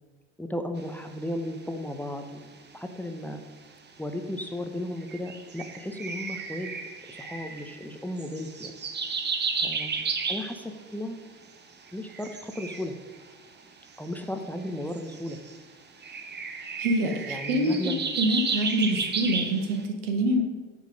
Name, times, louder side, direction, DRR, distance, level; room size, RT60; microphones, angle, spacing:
voice 1, 0.4-2.5 2.7-3.4 4.0-6.7 7.1-8.7 9.6-11.2 11.9-13.0 14.0-15.4 17.3-18.1, left 1 dB, 5° left, 5 dB, 0.9 m, -35 dB
sound 1, 4.6-4.7 5.0-10.8 11.9-13.2 13.9-15.6 16.0-19.8, right 4 dB, 30° right, 1.0 m, -33 dB
voice 2, 16.8-17.7 18.2-20.4, right 1 dB, 80° right, 5 dB, 1.2 m, -25 dB
9.1 x 4.9 x 5.2 m, 1.4 s
hypercardioid pair, 65°, 36 cm